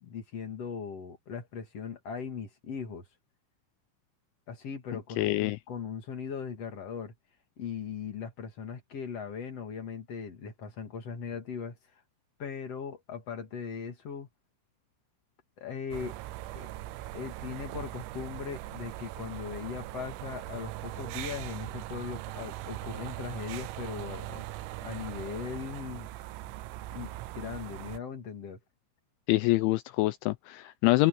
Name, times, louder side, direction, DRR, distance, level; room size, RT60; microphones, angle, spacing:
voice 1, 0.0-3.0 4.5-7.1 7.6-12.0 12.4-14.3 15.6-16.2 16.5-16.7 17.1-24.4 24.8-26.1 26.9-28.6, left 6 dB, 45° left, 2.2 m, -39 dB
voice 2, 5.2-5.6 29.3-31.1, left 20 dB, 90° left, 2.7 m, -25 dB
sound 1, 15.9-28.0, right 16 dB, 90° right, 3.6 m, -40 dB
open air
omnidirectional pair, 6.0 m